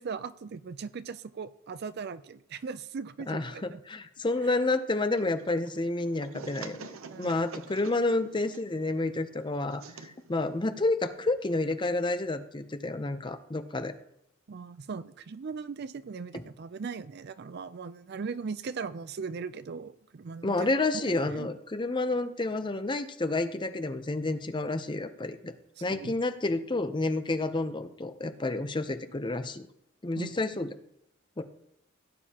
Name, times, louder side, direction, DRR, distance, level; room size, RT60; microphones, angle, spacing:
voice 1, 0.0-3.8 7.1-7.4 14.5-21.5 25.8-26.1 30.2-30.4, right 5 dB, 50° right, 14 dB, 0.4 m, -39 dB
voice 2, 3.3-6.9 7.2-13.9 16.3-16.4 20.4-25.5 25.8-29.7 30.0-30.7 31.4-31.5, left 2 dB, 25° left, 10 dB, 0.6 m, -30 dB
sound 1, 5.2-11.8, right 5 dB, 85° right, 0.7 m, -48 dB
17.0 x 9.2 x 2.9 m, 0.78 s
head